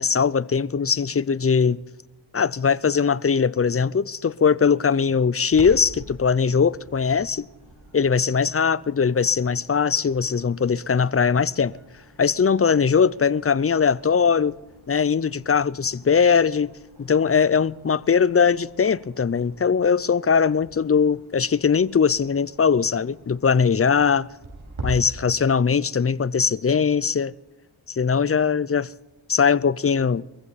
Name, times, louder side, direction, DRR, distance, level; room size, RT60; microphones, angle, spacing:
voice 1, 0.0-1.8 2.3-7.5 7.9-11.7 12.2-14.5 14.9-16.7 17.0-24.3 24.8-27.3 27.9-28.9 29.3-30.3, left 6 dB, 30° left, 0.5 m, -20 dB
Clock, 5.5-24.9, right 2 dB, 80° right, 6.5 m, -46 dB
22.5 x 15.5 x 4.1 m
cardioid pair, 50°, 47 cm